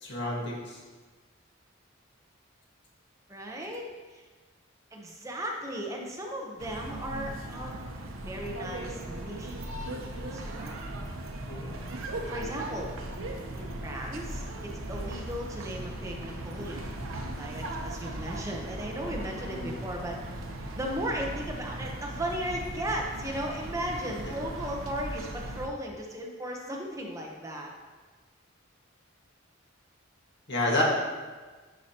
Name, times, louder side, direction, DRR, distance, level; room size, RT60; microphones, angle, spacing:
voice 1, 0.0-0.8 11.5-11.7 19.5-19.7 24.3-24.4 30.5-30.8, left 1 dB, 55° left, -4 dB, 1.7 m, -30 dB
voice 2, 3.3-4.2 4.9-7.7 8.1-10.8 12.3-12.9 13.6-16.9 17.4-20.2 20.7-27.7, equal, 15° right, -1 dB, 0.8 m, -36 dB
sound 1, 6.6-25.7, right 1 dB, 75° right, 0.8 m, -38 dB
10.5 x 4.9 x 2.9 m, 1.4 s
head